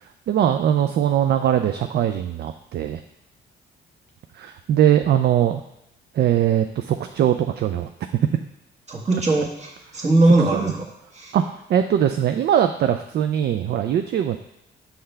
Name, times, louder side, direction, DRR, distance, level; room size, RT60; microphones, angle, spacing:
voice 1, 0.3-3.0 4.3-5.6 6.1-7.9 10.6-10.7 11.3-14.4, right 10 dB, 55° right, 7 dB, 0.4 m, -21 dB
voice 2, 8.9-10.9 11.1-11.3, right 2 dB, 35° right, -2 dB, 1.6 m, -20 dB
5.7 x 5.6 x 3.3 m, 0.81 s
cardioid pair, 90°, 20 cm